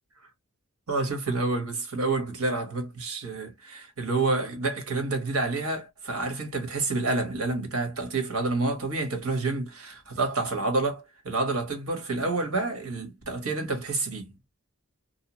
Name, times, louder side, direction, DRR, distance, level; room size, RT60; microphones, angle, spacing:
voice 1, 0.9-14.3, right 3 dB, 80° right, 1.2 m, -28 dB
2.9 x 2.2 x 2.9 m
head